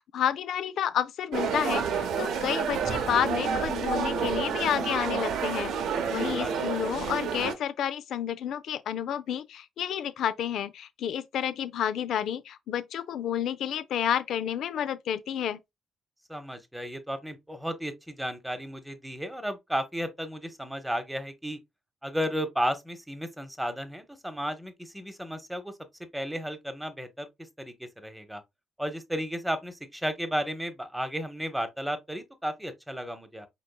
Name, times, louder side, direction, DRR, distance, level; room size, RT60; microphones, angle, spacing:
voice 1, 0.0-15.6, left 9 dB, 75° left, 0.5 m, -30 dB
sound 1, 1.3-7.5, right 6 dB, 80° right, 0.8 m, -29 dB
voice 2, 6.2-6.7 16.3-21.6 22.0-25.7 26.1-28.4 28.8-33.5, equal, 5° right, 1.0 m, -34 dB
5.2 x 3.7 x 2.3 m
cardioid pair, 90°, 0 cm